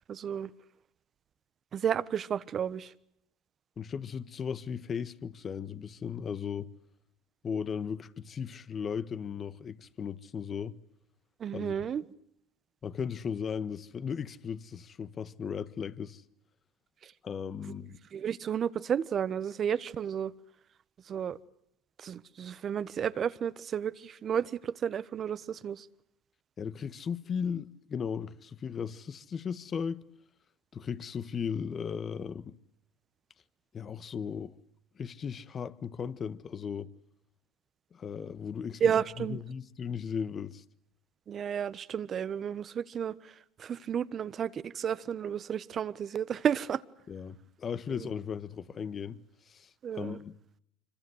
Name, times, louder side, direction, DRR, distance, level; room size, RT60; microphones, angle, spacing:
voice 1, 0.1-0.5 1.7-2.9 11.4-12.0 17.0-17.1 17.7-20.3 21.1-21.4 22.0-25.9 38.8-39.4 41.3-43.3 43.6-46.8 47.9-48.1 49.8-50.2, right 8 dB, 40° right, 1.2 m, -32 dB
voice 2, 3.8-6.7 7.4-10.8 11.5-11.8 12.8-16.2 17.2-18.0 26.6-30.0 30.7-32.5 33.7-34.5 35.0-36.9 37.9-38.8 39.2-40.6 47.1-49.2 49.5-50.3, left 7 dB, 35° left, 1.5 m, -36 dB
26.0 x 24.5 x 8.0 m
supercardioid pair, 100°, 0 cm